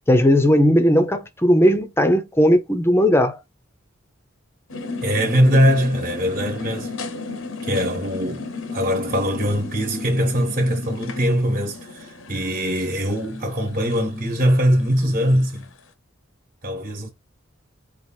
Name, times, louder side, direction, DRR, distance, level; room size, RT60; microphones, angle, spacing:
voice 1, 0.1-3.4, equal, 10° left, 0.7 m, -17 dB
sound 1, 4.7-15.7, left 3 dB, 80° left, 1.0 m, -34 dB
voice 2, 5.0-6.9 7.6-8.4 8.7-15.7 16.6-17.1, equal, 40° right, 1.2 m, -21 dB
4.6 x 2.5 x 4.3 m
head